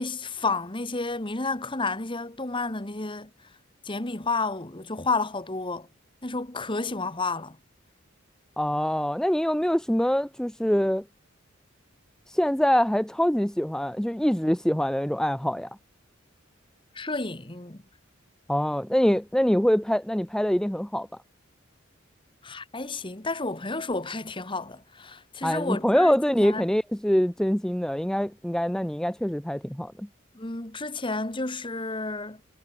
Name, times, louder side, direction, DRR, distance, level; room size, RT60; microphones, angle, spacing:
voice 1, 0.0-3.3 3.8-5.9 6.2-7.6 16.9-17.8 22.4-26.6 30.3-32.4, left 3 dB, 25° left, 1.6 m, -31 dB
voice 2, 8.6-11.0 12.3-15.7 18.5-21.1 25.4-30.1, equal, 5° left, 0.5 m, -24 dB
head